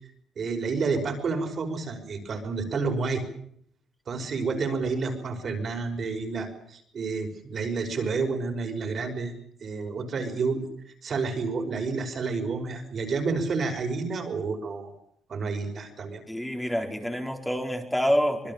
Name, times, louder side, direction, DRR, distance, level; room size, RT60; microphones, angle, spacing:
voice 1, 0.4-3.2 4.1-9.3 9.6-10.6 11.0-14.9 15.3-16.2, right 4 dB, 50° right, 5 dB, 5.6 m, -29 dB
voice 2, 16.3-18.5, equal, 5° left, 3 dB, 4.3 m, -27 dB
25.5 x 21.0 x 7.2 m, 0.67 s
cardioid pair, 90°, 0 cm